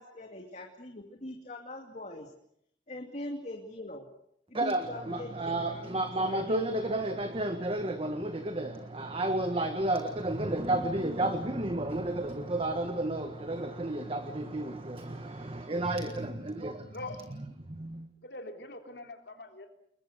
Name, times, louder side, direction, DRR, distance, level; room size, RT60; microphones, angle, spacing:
voice 1, 0.0-2.3 2.9-4.1 4.5-6.9, left 1 dB, 40° left, 2 dB, 2.7 m, -42 dB
voice 2, 4.5-17.0 17.7-18.1, right 1 dB, 30° right, 8 dB, 1.6 m, -32 dB
voice 3, 16.9-17.2 18.2-19.7, left 2 dB, 70° left, 5 dB, 3.6 m, -43 dB
29.0 x 22.0 x 6.7 m, 0.71 s
head